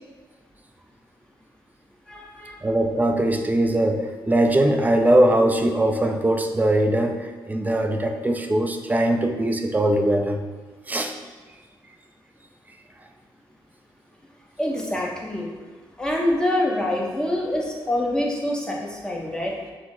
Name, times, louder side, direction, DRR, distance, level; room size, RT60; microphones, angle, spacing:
voice 1, 2.1-2.6 14.6-15.5 16.0-19.5, left 1 dB, 10° left, -2 dB, 0.9 m, -25 dB
voice 2, 2.6-10.4 10.9-11.1, right 1 dB, 20° right, 5 dB, 0.4 m, -21 dB
5.8 x 2.0 x 3.7 m, 1.4 s
cardioid pair, 75°, 9 cm